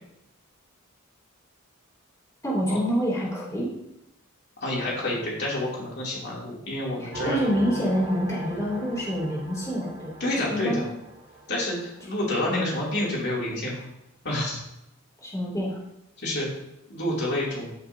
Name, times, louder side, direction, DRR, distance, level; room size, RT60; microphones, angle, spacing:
voice 1, 2.4-3.7 7.0-10.9 12.5-12.6 15.2-15.8, equal, 15° left, -5 dB, 2.8 m, -27 dB
voice 2, 4.6-7.4 10.2-10.8 11.5-13.8 14.2-14.6 16.2-16.5 16.9-17.7, left 1 dB, 50° left, -5 dB, 2.9 m, -28 dB
sound 1, 7.1-12.5, right 1 dB, 65° right, 3.7 m, -38 dB
14.0 x 5.9 x 2.8 m, 0.84 s
head